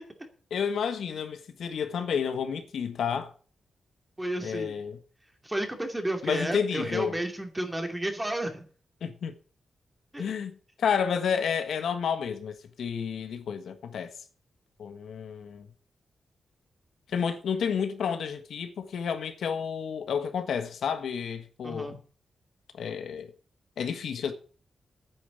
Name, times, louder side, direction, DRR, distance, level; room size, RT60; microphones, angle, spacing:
voice 1, 0.5-3.3 4.4-5.0 6.2-7.2 9.0-9.3 10.2-14.1 14.8-15.7 17.1-22.0 22.7-23.3 23.8-24.3, left 7 dB, 85° left, 1.4 m, -30 dB
voice 2, 4.2-4.8 5.4-8.6 10.1-10.2 21.6-21.9, right 1 dB, 15° right, 2.6 m, -32 dB
9.6 x 8.6 x 8.2 m
wide cardioid pair, 115°, 0 cm